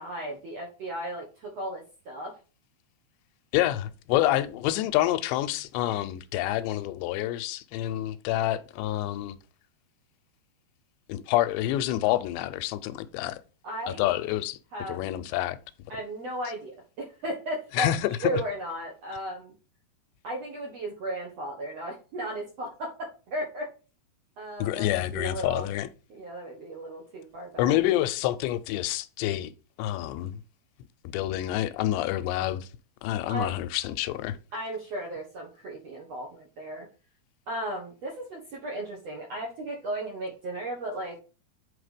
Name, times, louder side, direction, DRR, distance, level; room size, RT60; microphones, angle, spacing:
voice 1, 0.0-2.4 4.3-4.4 13.6-14.1 14.7-15.0 15.9-17.9 18.2-19.5 20.2-23.7 24.4-25.7 26.1-27.8 33.3-33.5 34.5-36.9 37.5-41.2, right 1 dB, 65° right, 1.6 m, -35 dB
voice 2, 3.5-9.4 11.1-13.4 13.9-14.6 14.9-15.6 17.7-18.4 24.6-25.9 27.6-29.5 29.8-30.4 31.1-32.7 33.0-34.4, left 14 dB, 90° left, 2.9 m, -27 dB
8.5 x 4.1 x 5.1 m
omnidirectional pair, 5.0 m